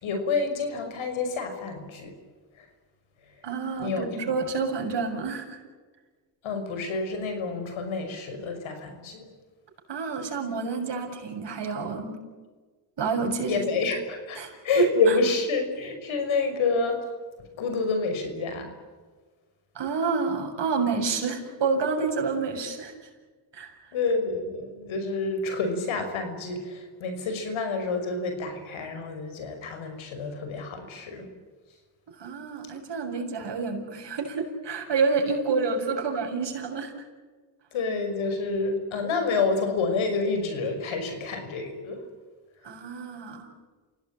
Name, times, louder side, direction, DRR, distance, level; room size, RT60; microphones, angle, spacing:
voice 1, 0.0-2.1 2.6-2.7 3.3-3.4 3.8-4.4 6.4-9.3 13.5-17.0 17.6-18.7 23.9-31.3 37.7-42.0, left 4 dB, 85° left, 7 dB, 6.0 m, -28 dB
voice 2, 3.4-5.6 9.9-12.2 13.0-13.9 14.4-14.9 19.8-22.9 23.5-23.7 32.2-36.9 42.6-43.5, right 4 dB, 60° right, 2 dB, 7.0 m, -28 dB
28.5 x 17.5 x 9.0 m, 1.4 s
cardioid pair, 75°, 47 cm